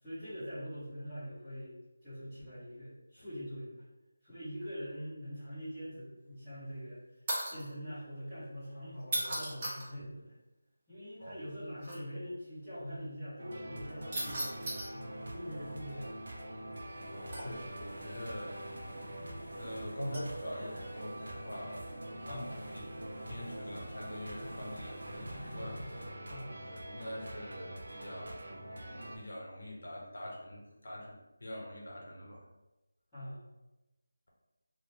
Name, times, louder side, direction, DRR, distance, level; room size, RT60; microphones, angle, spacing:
voice 1, 0.0-3.8 4.2-7.0 7.5-10.3 10.9-16.3 22.2-22.5 26.3-26.6 33.1-33.4, equal, 10° left, -17 dB, 1.0 m, -43 dB
sound 1, 7.3-7.7 9.0-9.9 11.8-12.0 14.1-14.9 17.3-17.7 20.1-20.4 21.3-21.5, right 1 dB, 25° right, 0.6 m, -36 dB
sound 2, 13.4-29.2, right 1 dB, 65° right, 0.5 m, -45 dB
Engine / Mechanisms, 14.7-26.1, equal, 40° right, 0.9 m, -51 dB
voice 2, 17.1-18.7 19.6-21.8 22.2-22.4 22.7-26.2 26.6-28.4 28.7-32.4, equal, 60° left, -2 dB, 0.8 m, -44 dB
2.7 x 2.1 x 3.0 m, 1.0 s
figure-of-eight pair, 175°, 0 cm